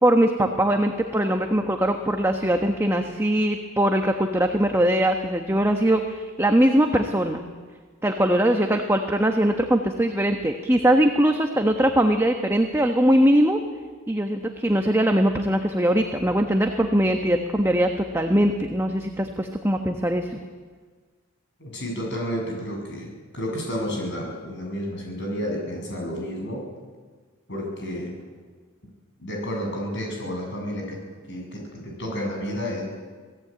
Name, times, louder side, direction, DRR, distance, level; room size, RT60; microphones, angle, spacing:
voice 1, 0.0-7.4 8.0-13.6 14.1-20.4, right 1 dB, 10° right, 4 dB, 1.2 m, -21 dB
voice 2, 21.6-26.6 27.5-28.1 29.2-31.0 31.3-32.8, equal, 55° left, 0 dB, 7.7 m, -31 dB
26.5 x 18.0 x 8.8 m, 1.5 s
head